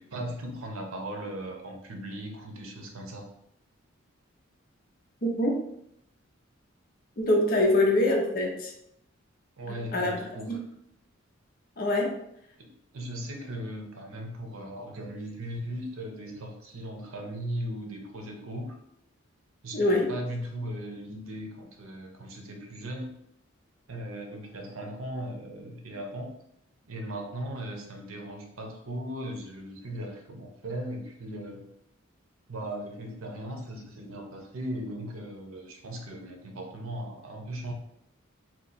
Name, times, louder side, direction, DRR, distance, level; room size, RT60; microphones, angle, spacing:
voice 1, 0.0-3.3 9.6-10.6 12.6-18.7 19.6-23.1 23.9-26.3 26.9-31.6 32.5-37.7, right 1 dB, 85° right, 3 dB, 0.7 m, -38 dB
voice 2, 7.2-8.7 9.7-10.1 10.5-10.6 11.8-12.2 19.7-20.1, left 1 dB, 45° left, 1 dB, 0.7 m, -24 dB
2.9 x 2.3 x 4.0 m, 0.75 s
head